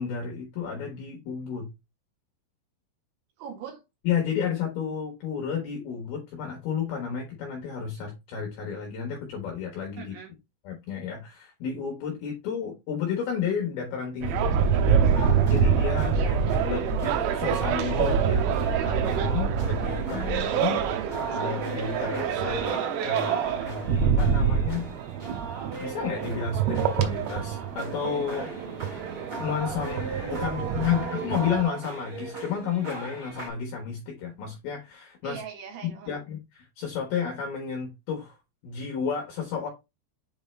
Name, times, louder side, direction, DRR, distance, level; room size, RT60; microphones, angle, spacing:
voice 1, 0.0-1.7 4.0-10.1 10.6-15.0 15.4-16.1 16.6-18.6 18.8-20.8 21.3-24.9 25.8-28.5 28.9-29.1 29.4-35.4 35.8-38.4 38.6-39.7, left 7 dB, 70° left, 2.5 m, -32 dB
voice 2, 3.4-3.8 10.0-10.3 16.1-16.4 30.3-31.3 35.2-36.2, right 8 dB, 70° right, 3.9 m, -39 dB
sound 1, 14.2-31.6, right 7 dB, 90° right, 3.6 m, -26 dB
sound 2, 15.1-33.5, right 3 dB, 40° right, 1.4 m, -38 dB
8.3 x 3.6 x 3.2 m
omnidirectional pair, 6.0 m